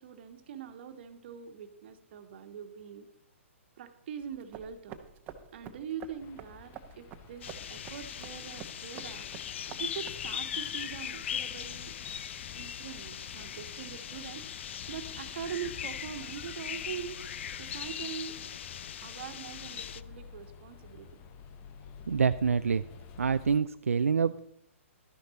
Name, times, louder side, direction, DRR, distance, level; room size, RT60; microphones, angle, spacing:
voice 1, 0.0-3.1 3.8-5.0 5.5-9.3 9.8-12.0 12.6-14.4 14.9-17.2 17.6-18.4 19.0-21.2, right 8 dB, 50° right, 8 dB, 1.3 m, -43 dB
sound 1, 4.2-10.4, right 8 dB, 25° right, 1.0 m, -48 dB
sound 2, 6.2-23.6, left 8 dB, 30° left, 0.8 m, -51 dB
sound 3, 7.4-20.0, left 9 dB, 60° left, 0.5 m, -40 dB
voice 2, 22.1-22.9 23.2-24.4, right 6 dB, 85° right, 10 dB, 0.4 m, -26 dB
12.5 x 10.5 x 4.1 m, 0.73 s
hypercardioid pair, 130°, 7 cm